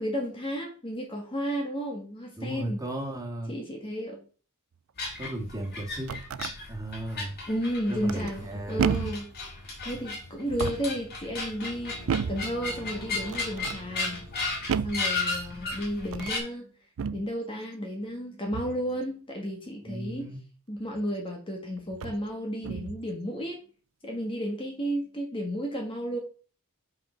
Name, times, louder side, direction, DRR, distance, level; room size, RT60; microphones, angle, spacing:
voice 1, 0.0-2.8 3.5-4.3 7.5-9.3 9.8-14.2 14.8-16.7 17.1-20.3 20.7-23.6 24.0-26.2, equal, 25° left, 1 dB, 1.5 m, -33 dB
voice 2, 2.4-3.5 5.2-6.2 6.7-7.4 7.9-8.9 19.8-20.4, right 1 dB, 15° right, 0 dB, 2.1 m, -35 dB
sound 1, 5.0-16.4, left 3 dB, 45° left, 2.6 m, -35 dB
sound 2, 5.8-6.6 8.0-8.5 8.8-9.3 10.4-11.0 12.1-12.5 13.3-13.8 14.7-15.1 16.0-16.4 17.0-17.3 18.5-18.8 20.9-21.0 21.9-22.2 22.6-23.0, right 6 dB, 65° right, 0.4 m, -31 dB
sound 3, 11.6-15.6, equal, 60° left, 2.7 m, -46 dB
5.7 x 5.2 x 5.7 m, 0.38 s
head